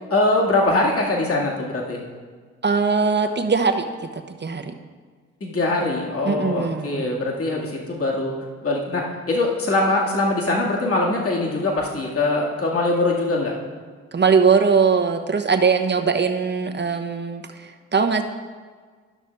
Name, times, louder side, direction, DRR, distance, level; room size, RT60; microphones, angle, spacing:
voice 1, 0.1-2.0 5.4-8.4 8.6-13.5, left 2 dB, 40° left, -2 dB, 2.1 m, -22 dB
voice 2, 2.6-3.8 4.4-4.7 6.2-7.0 14.1-18.2, right 5 dB, 30° right, 6 dB, 1.0 m, -20 dB
12.0 x 6.3 x 3.5 m, 1.6 s
hypercardioid pair, 40°, 34 cm